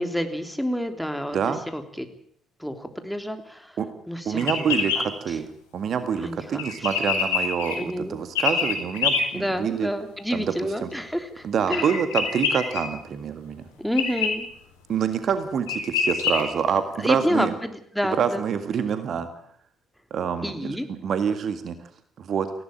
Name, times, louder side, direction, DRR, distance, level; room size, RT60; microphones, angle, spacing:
voice 1, 0.0-2.1 2.6-3.8 4.1-5.4 6.2-6.9 7.8-8.2 9.3-12.0 13.8-14.5 17.0-18.4 20.4-20.9, equal, ahead, 6 dB, 3.3 m, -29 dB
voice 2, 4.3-5.4 5.7-9.9 10.3-10.4 10.8-10.9 11.4-13.6 14.9-17.5 18.1-19.3 20.1-21.8 22.2-22.5, right 7 dB, 55° right, 9 dB, 1.8 m, -26 dB
sound 1, 4.4-5.0 6.6-7.8 8.4-9.2 11.7-12.8 14.0-14.3 15.3-15.4 15.7-16.4, left 6 dB, 80° left, 3.6 m, -25 dB
19.0 x 16.5 x 8.8 m, 0.65 s
figure-of-eight pair, 45°, 0 cm